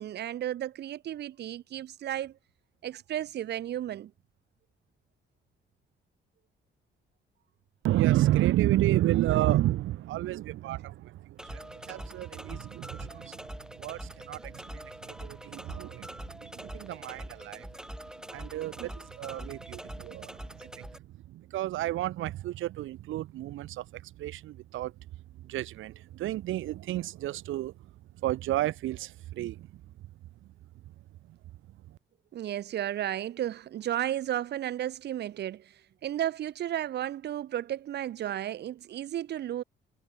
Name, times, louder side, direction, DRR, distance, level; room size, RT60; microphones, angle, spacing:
voice 1, 0.0-2.3 2.8-4.1 18.8-18.9 32.3-35.7 36.0-39.6, right 11 dB, 60° right, 0.6 m, -33 dB
voice 2, 7.8-13.4 13.8-17.7 18.3-20.9 21.3-24.9 25.4-27.7 28.2-29.7, right 15 dB, 85° right, 1.5 m, -31 dB
sound 1, 11.4-21.0, equal, 5° right, 2.3 m, -44 dB
cardioid pair, 90°, 20 cm